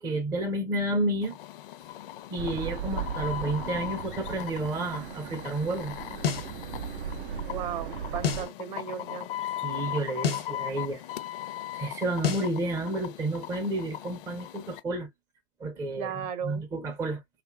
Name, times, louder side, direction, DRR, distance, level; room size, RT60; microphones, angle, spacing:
voice 1, 0.0-1.4 2.3-6.0 9.6-11.0 11.7-15.1 15.6-17.2, right 2 dB, 10° right, 0.4 m, -31 dB
sound 1, 1.2-14.8, left 13 dB, 65° left, 0.5 m, -39 dB
sound 2, 2.4-8.5, right 8 dB, 80° right, 0.5 m, -37 dB
sound 3, 6.2-6.5 8.2-8.5 10.2-10.5 12.2-12.5, left 7 dB, 85° left, 1.0 m, -28 dB
voice 2, 7.3-9.3 16.0-16.6, right 8 dB, 50° right, 0.8 m, -35 dB
2.6 x 2.3 x 2.3 m
hypercardioid pair, 125°, 29 cm